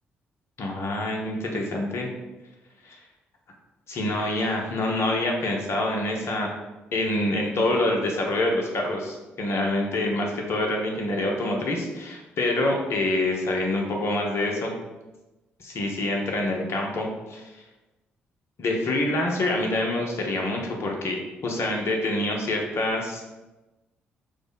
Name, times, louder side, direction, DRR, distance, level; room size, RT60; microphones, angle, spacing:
voice 1, 0.6-2.1 2.8-3.0 3.9-6.5 6.9-14.7 15.6-17.4 18.6-21.2 21.4-23.3, left 2 dB, 50° left, 0 dB, 0.6 m, -26 dB
3.3 x 2.0 x 3.7 m, 1.1 s
figure-of-eight pair, 40°, 5 cm